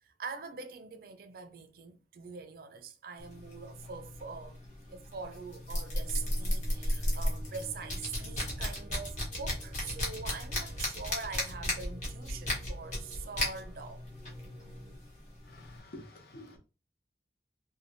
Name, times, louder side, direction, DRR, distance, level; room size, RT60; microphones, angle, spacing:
voice 1, 0.0-14.0, right 5 dB, 55° right, 0.4 m, -43 dB
sound 1, 3.2-15.8, left 1 dB, 40° left, 1.0 m, -36 dB
sound 2, 5.9-15.0, right 1 dB, 5° left, 0.7 m, -50 dB
voice 2, 15.5-16.6, left 1 dB, 60° left, 0.6 m, -49 dB
3.3 x 2.1 x 2.5 m
head